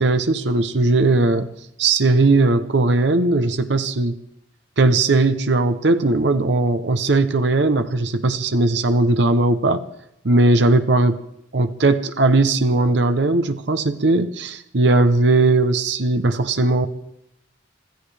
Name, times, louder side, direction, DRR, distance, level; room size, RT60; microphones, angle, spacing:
voice 1, 0.0-1.5 1.8-4.1 4.8-9.8 10.2-11.2 11.5-16.9, right 2 dB, 65° right, 9 dB, 0.9 m, -18 dB
26.0 x 15.0 x 3.4 m, 0.78 s
head